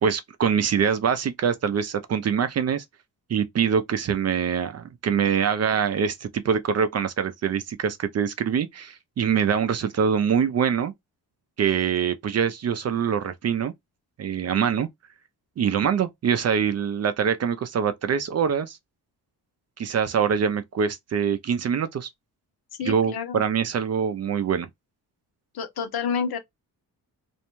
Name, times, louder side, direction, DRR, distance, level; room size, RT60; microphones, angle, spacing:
voice 1, 0.0-2.8 3.3-10.9 11.6-13.7 14.2-14.9 15.6-18.8 19.8-22.1 22.8-24.7, right 7 dB, 45° right, 0.4 m, -24 dB
voice 2, 22.8-23.4 25.5-26.4, left 6 dB, 70° left, 0.8 m, -29 dB
2.5 x 2.1 x 2.9 m
cardioid pair, 100°, 38 cm